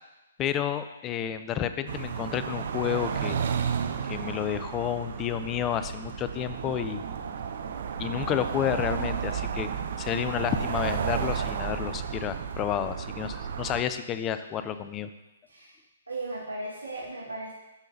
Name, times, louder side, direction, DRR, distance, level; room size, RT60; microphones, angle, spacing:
voice 1, 0.4-3.5 4.0-7.0 8.0-9.7 10.0-15.1, left 10 dB, 20° left, 11 dB, 0.4 m, -30 dB
sound 1, 1.9-13.8, right 7 dB, 50° right, 0.6 m, -32 dB
voice 2, 16.1-17.5, right 2 dB, 85° right, -4 dB, 1.7 m, -36 dB
12.5 x 5.5 x 2.7 m, 1.0 s
figure-of-eight pair, 125°, 0 cm